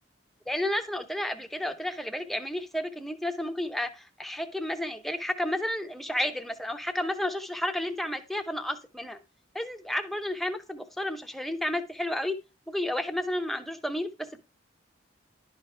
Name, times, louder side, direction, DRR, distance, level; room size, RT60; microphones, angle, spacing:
voice 1, 0.5-9.2 9.5-12.3 12.7-14.4, left 1 dB, ahead, 6 dB, 0.6 m, -31 dB
11.0 x 5.0 x 3.3 m, 0.29 s
head